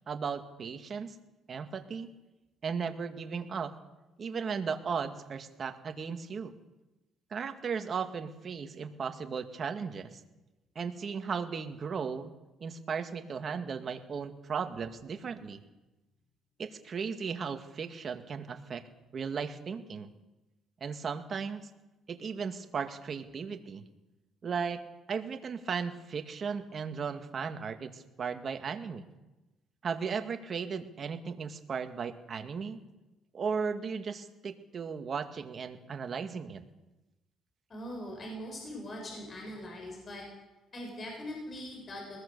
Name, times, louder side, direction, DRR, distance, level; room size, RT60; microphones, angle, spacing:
voice 1, 0.1-1.2 1.5-2.1 2.6-3.8 4.2-6.5 7.3-10.2 10.8-12.3 12.6-15.6 16.6-18.8 19.1-20.1 20.8-21.7 22.1-23.8 24.4-29.1 29.8-32.8 33.3-36.6, right 6 dB, 45° right, 7 dB, 2.1 m, -36 dB
voice 2, 37.7-40.2 40.7-42.2, equal, 40° left, 1 dB, 7.5 m, -41 dB
22.0 x 20.0 x 6.9 m, 1.0 s
cardioid pair, 90°, 0 cm